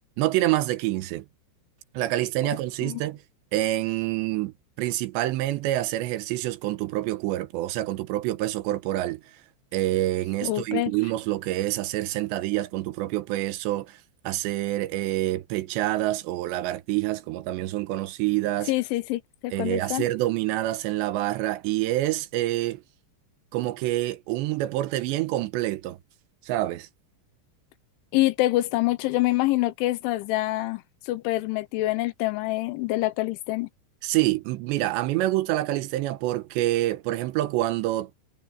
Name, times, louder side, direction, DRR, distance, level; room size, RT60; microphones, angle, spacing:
voice 1, 0.2-1.3 1.9-3.2 3.5-9.2 9.7-18.7 19.5-22.8 23.5-26.0 26.4-26.9 34.0-38.1, right 16 dB, 80° right, 2.9 m, -27 dB
voice 2, 10.4-10.9 18.7-20.1 28.1-33.7, left 17 dB, 80° left, 3.4 m, -26 dB
omnidirectional pair, 5.5 m